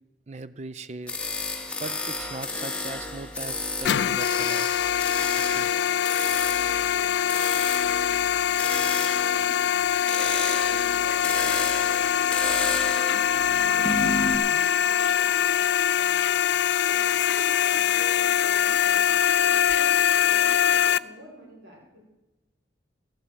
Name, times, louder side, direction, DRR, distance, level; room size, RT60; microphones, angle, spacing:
voice 1, 0.3-1.2 1.8-4.7 5.3-5.7, right 3 dB, 35° right, 15 dB, 0.5 m, -39 dB
sound 1, 1.1-14.4, left 2 dB, 5° left, 1.2 m, -32 dB
sound 2, 3.8-21.0, left 9 dB, 70° left, 0.3 m, -23 dB
voice 2, 8.7-22.0, equal, 75° right, -3 dB, 5.6 m, -48 dB
14.5 x 7.3 x 8.8 m, 1.0 s
head